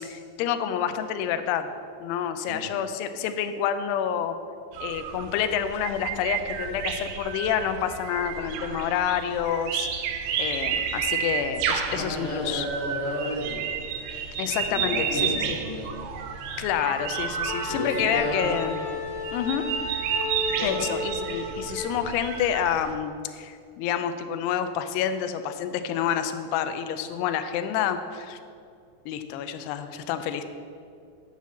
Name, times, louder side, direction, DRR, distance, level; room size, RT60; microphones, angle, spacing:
voice 1, 0.0-1.7 2.0-4.4 4.8-9.9 10.4-12.7 14.4-15.2 16.6-18.8 19.3-19.7 20.6-28.4 29.1-30.4, left 9 dB, 80° left, 9 dB, 2.6 m, -28 dB
sound 1, 4.7-22.9, right 7 dB, 85° right, 3.0 m, -32 dB
voice 2, 11.9-13.6 14.6-16.0 17.7-18.6 20.5-20.9, left 1 dB, 45° left, -6 dB, 2.0 m, -32 dB
Wind instrument woodwind instrument, 17.5-22.1, left 1 dB, 60° left, 3.4 m, -33 dB
9.1 x 5.6 x 7.4 m, 2.3 s
omnidirectional pair, 4.9 m